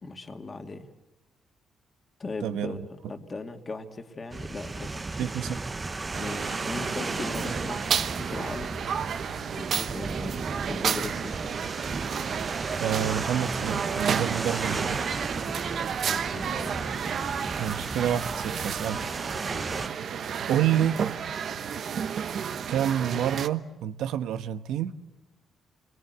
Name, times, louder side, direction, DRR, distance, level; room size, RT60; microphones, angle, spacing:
voice 1, 0.0-0.9 2.2-5.2 6.2-8.9 9.5-11.3 16.1-16.9 19.4-19.9, left 3 dB, 30° left, 6 dB, 2.0 m, -38 dB
voice 2, 2.4-2.9 5.2-5.6 12.8-15.1 17.6-19.0 20.5-21.0 22.7-24.9, right 10 dB, 85° right, 10 dB, 1.1 m, -28 dB
sound 1, 4.3-19.9, right 3 dB, 25° right, 0.9 m, -35 dB
sound 2, 6.1-23.5, right 7 dB, 60° right, 1.1 m, -32 dB
28.5 x 22.5 x 8.1 m, 1.0 s
cardioid pair, 90°, 0 cm